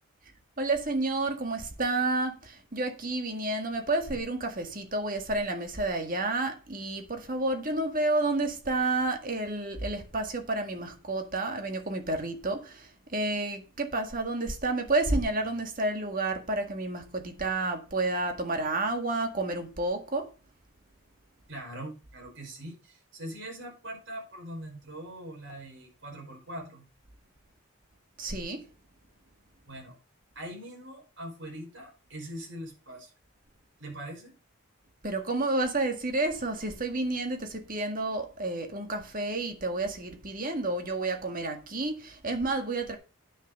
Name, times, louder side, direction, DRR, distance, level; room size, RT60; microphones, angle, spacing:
voice 1, 0.6-20.3 28.2-28.7 35.0-43.0, right 2 dB, 40° right, 1.8 m, -30 dB
voice 2, 21.5-26.9 29.6-30.0 30.3-33.1 33.8-34.3, right 1 dB, 55° right, 5.1 m, -42 dB
10.0 x 6.6 x 5.3 m
head